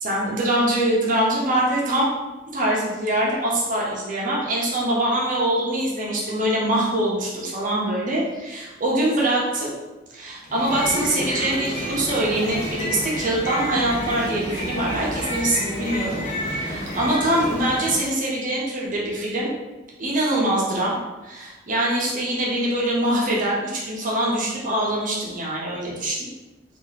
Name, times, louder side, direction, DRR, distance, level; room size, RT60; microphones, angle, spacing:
voice 1, 0.0-2.1 2.5-9.7 10.1-19.5 20.0-20.9 21.2-26.3, right 1 dB, 45° right, -4 dB, 0.7 m, -23 dB
sound 1, 10.4-18.1, equal, 40° left, 0.8 m, -30 dB
3.5 x 2.4 x 3.1 m, 1.1 s
head